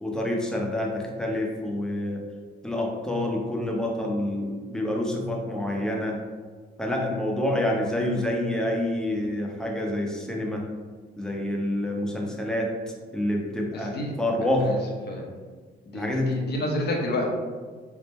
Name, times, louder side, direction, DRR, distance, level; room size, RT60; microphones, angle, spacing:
voice 1, 0.0-2.2 2.6-6.2 6.8-10.7 11.2-12.8 13.1-14.8 15.9-16.4, left 1 dB, 5° left, -1 dB, 0.7 m, -27 dB
voice 2, 13.7-14.1 14.6-14.8 15.1-15.2 15.9-17.3, left 1 dB, 55° left, -1 dB, 0.8 m, -29 dB
3.5 x 2.1 x 4.1 m, 1.5 s
cardioid pair, 90°, 20 cm